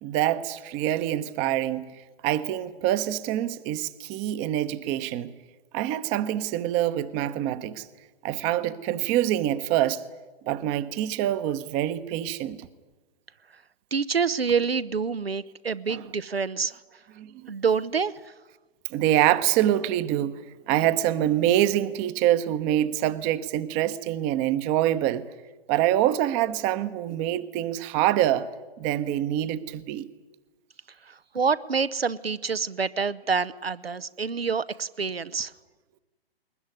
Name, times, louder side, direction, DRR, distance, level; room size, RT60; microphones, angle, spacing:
voice 1, 0.0-5.3 5.7-7.9 8.2-10.0 10.5-12.7 15.9-16.0 17.2-17.3 18.9-20.4 20.7-25.3 25.7-28.5 28.8-30.1, right 12 dB, 20° right, 0.9 m, -25 dB
voice 2, 13.9-16.8 17.5-18.1 31.1-35.5, right 5 dB, 75° right, 0.9 m, -27 dB
21.0 x 20.5 x 9.6 m
figure-of-eight pair, 120°, 30 cm